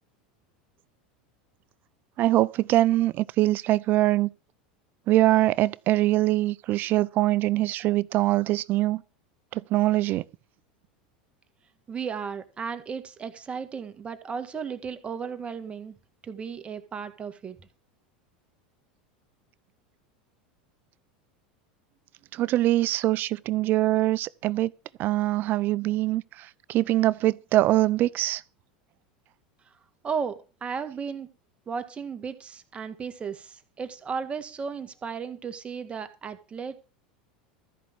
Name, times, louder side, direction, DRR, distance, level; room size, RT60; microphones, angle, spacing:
voice 1, 2.2-4.3 5.1-9.0 9.5-10.2 22.3-24.7 25.0-28.4, right 16 dB, 45° right, 0.5 m, -23 dB
voice 2, 11.9-16.0 16.2-17.6 30.0-31.3 31.7-36.8, right 6 dB, 25° right, 2.0 m, -35 dB
13.5 x 5.6 x 8.2 m
hypercardioid pair, 95°, 5 cm